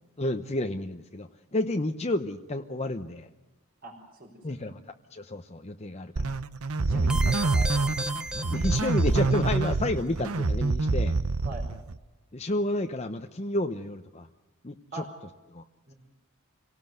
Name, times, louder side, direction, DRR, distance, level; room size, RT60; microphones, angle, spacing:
voice 1, 0.2-3.3 4.4-6.4 6.9-7.0 8.5-11.2 12.3-14.3 14.6-15.0 15.5-15.6, left 1 dB, 30° left, 6 dB, 0.8 m, -31 dB
voice 2, 3.8-4.7 6.8-8.1 11.4-11.6 14.9-15.1 15.9-16.0, right 2 dB, 40° right, -2 dB, 4.9 m, -43 dB
sound 1, 6.2-12.0, right 3 dB, 70° right, 0.8 m, -26 dB
sound 2, 7.1-9.4, right 1 dB, 5° right, 0.8 m, -35 dB
27.0 x 18.0 x 8.0 m, 1.1 s
head